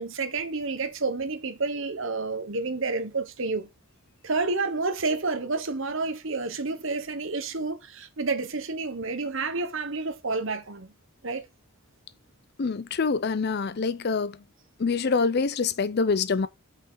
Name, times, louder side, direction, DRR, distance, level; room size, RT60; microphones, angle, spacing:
voice 1, 0.0-3.7 4.2-10.9 11.2-11.5, right 3 dB, 60° right, 1.1 m, -29 dB
voice 2, 12.6-14.4 14.8-16.5, left 4 dB, 50° left, 0.5 m, -25 dB
6.0 x 5.6 x 4.0 m
head